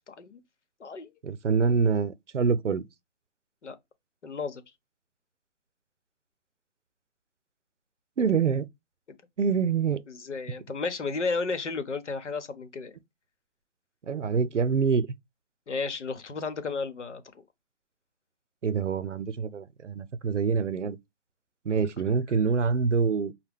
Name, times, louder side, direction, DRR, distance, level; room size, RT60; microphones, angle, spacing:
voice 1, 0.1-0.4 0.8-1.1 3.6-3.8 4.2-4.6 9.1-9.2 10.1-13.0 15.7-17.2, left 4 dB, 75° left, 1.1 m, -33 dB
voice 2, 1.2-2.9 8.2-8.7 9.4-10.0 14.0-15.1 18.6-21.0 21.6-23.3, right 5 dB, 90° right, 0.7 m, -25 dB
5.8 x 2.2 x 3.5 m
figure-of-eight pair, 145°, 35 cm